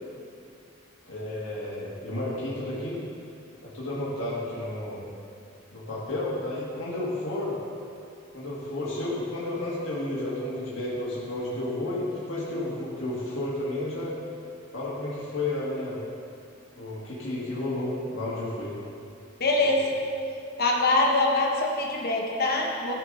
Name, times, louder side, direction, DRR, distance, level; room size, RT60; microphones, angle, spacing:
voice 1, 1.1-3.0 3.6-5.0 5.7-7.6 8.3-14.1 14.7-16.0 16.7-18.7 19.6-19.7, left 1 dB, 75° left, -8 dB, 1.8 m, -32 dB
voice 2, 19.4-19.8 20.6-22.9, left 2 dB, 50° left, -1 dB, 1.2 m, -24 dB
13.5 x 4.8 x 3.9 m, 2.5 s
head